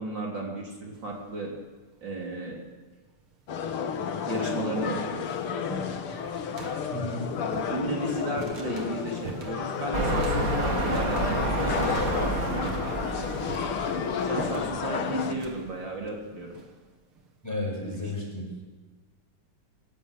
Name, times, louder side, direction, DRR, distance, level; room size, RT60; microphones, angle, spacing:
voice 1, 0.0-1.5 2.0-2.6 4.3-5.3 7.7-12.3 14.2-16.6 18.0-18.1, right 2 dB, 55° right, -1 dB, 4.2 m, -34 dB
sound 1, 0.9-1.4 2.3-2.4 3.3-3.4 3.7-17.3, right 4 dB, 75° right, 3.2 m, -43 dB
sound 2, 3.5-15.3, left 6 dB, 75° left, 2.3 m, -31 dB
voice 2, 6.9-7.3 17.4-18.5, left 2 dB, 5° left, -1 dB, 7.2 m, -32 dB
sound 3, 9.9-14.9 15.5-15.6, right 2 dB, 40° right, 2.9 m, -30 dB
27.5 x 14.5 x 8.3 m, 1.3 s
omnidirectional pair, 2.4 m